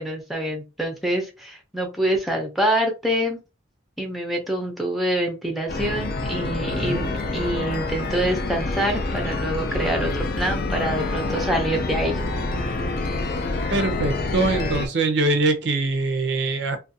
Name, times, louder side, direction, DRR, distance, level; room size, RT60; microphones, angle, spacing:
voice 1, 0.0-3.4 4.0-12.2, right 1 dB, ahead, 0.5 m, -26 dB
sound 1, 5.7-14.9, left 2 dB, 55° left, 0.4 m, -27 dB
voice 2, 6.7-7.0 13.7-16.8, right 2 dB, 70° right, 0.5 m, -23 dB
2.4 x 2.2 x 2.6 m
head